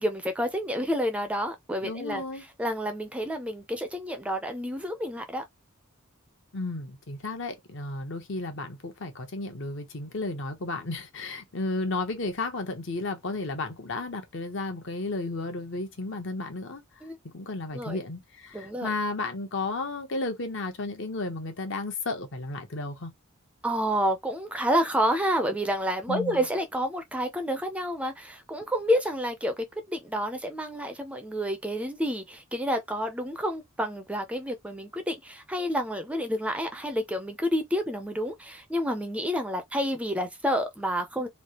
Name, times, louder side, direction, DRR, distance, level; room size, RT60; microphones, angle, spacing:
voice 1, 0.0-2.2 2.6-5.4 17.0-17.2 17.7-18.0 18.5-18.9 23.6-41.3, equal, 5° right, 0.4 m, -29 dB
voice 2, 1.8-2.4 6.5-16.8 17.2-23.1 26.1-26.5, left 2 dB, 60° left, 0.8 m, -33 dB
3.3 x 2.4 x 2.8 m
head